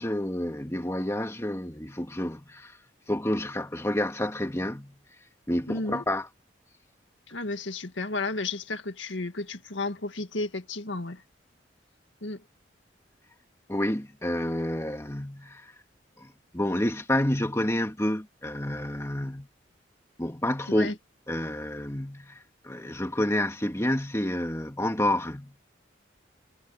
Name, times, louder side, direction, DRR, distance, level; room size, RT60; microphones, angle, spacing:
voice 1, 0.0-2.8 3.1-5.0 5.5-6.3 13.7-15.7 16.2-19.5 20.2-20.9 21.3-25.5, left 1 dB, 15° left, 2.0 m, -29 dB
voice 2, 5.7-6.0 7.3-11.2 12.2-12.4 20.8-20.9, left 2 dB, 85° left, 1.9 m, -33 dB
head